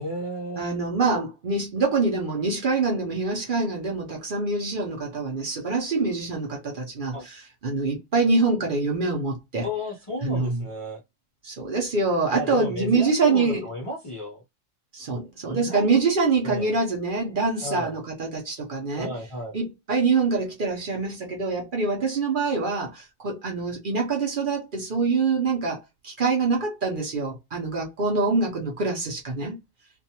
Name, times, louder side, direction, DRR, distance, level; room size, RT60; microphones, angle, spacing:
voice 1, 0.0-0.8 7.1-7.3 9.6-11.0 12.3-14.4 15.5-16.0 16.4-16.7 17.6-18.0 18.9-19.6, left 1 dB, 40° left, 0.5 m, -33 dB
voice 2, 0.6-9.7 10.2-10.6 11.4-13.7 14.9-19.1 19.5-29.6, right 3 dB, 50° right, 0.8 m, -25 dB
2.5 x 2.3 x 2.7 m
omnidirectional pair, 1.3 m